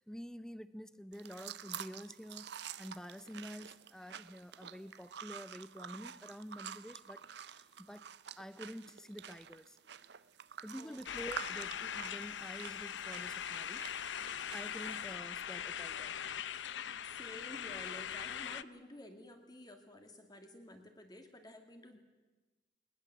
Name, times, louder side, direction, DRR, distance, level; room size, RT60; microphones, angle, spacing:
voice 1, 0.0-2.5 2.8-8.1 8.4-9.8 10.6-13.9 14.5-16.2, equal, 5° left, 0.6 m, -48 dB
sound 1, 1.1-15.1, right 8 dB, 65° right, 0.6 m, -49 dB
sound 2, 11.1-18.6, left 9 dB, 75° left, 0.6 m, -41 dB
voice 2, 17.0-22.0, left 1 dB, 20° left, 2.2 m, -52 dB
20.5 x 20.5 x 7.6 m
head